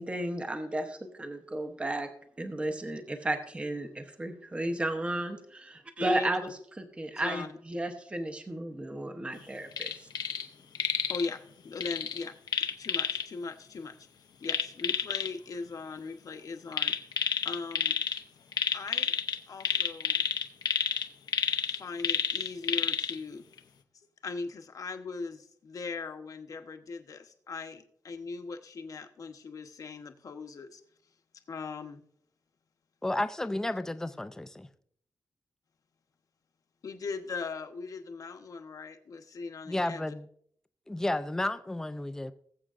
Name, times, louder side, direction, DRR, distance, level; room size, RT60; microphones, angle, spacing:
voice 1, 0.0-2.1 2.4-6.5 6.8-10.0, right 1 dB, 15° right, 6 dB, 0.9 m, -34 dB
voice 2, 6.0-6.3 7.1-7.5 10.8-12.3 12.8-13.9 14.4-16.9 17.4-17.9 18.7-19.1 19.5-20.2 21.7-23.4 24.2-30.8 31.5-32.0 36.8-40.0, left 4 dB, 55° left, 7 dB, 1.0 m, -39 dB
sound 1, 9.7-10.5 10.8-11.3 11.8-13.2 14.4-15.3 16.7-18.2 18.5-23.2 23.6-23.7, left 7 dB, 75° left, 0.7 m, -30 dB
voice 3, 33.0-34.7 39.7-40.3 40.9-42.3, left 1 dB, 5° left, 10 dB, 0.4 m, -32 dB
20.5 x 7.5 x 2.5 m, 0.64 s
wide cardioid pair, 160°, 7 cm